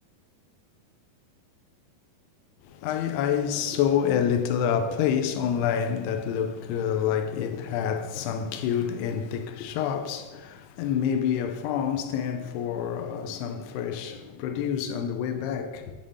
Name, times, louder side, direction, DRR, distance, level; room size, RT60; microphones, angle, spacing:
voice 1, 2.6-15.9, left 8 dB, 85° left, 2.6 m, -27 dB
7.4 x 3.4 x 5.4 m
omnidirectional pair, 4.7 m